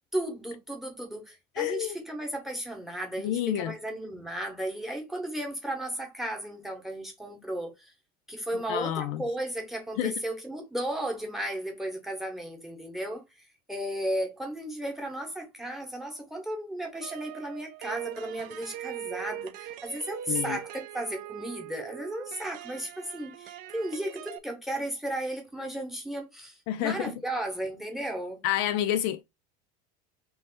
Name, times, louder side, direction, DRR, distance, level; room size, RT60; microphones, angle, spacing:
voice 1, 0.1-7.9 8.3-13.2 13.7-28.4, right 1 dB, ahead, 0.9 m, -34 dB
voice 2, 1.6-2.0 3.2-3.8 8.5-9.2 10.0-10.1 20.3-20.6 26.7-27.1 28.4-29.2, left 12 dB, 55° left, 0.4 m, -29 dB
sound 1, 17.0-24.4, right 12 dB, 45° right, 0.5 m, -41 dB
3.2 x 3.1 x 4.4 m
cardioid pair, 170°, 20 cm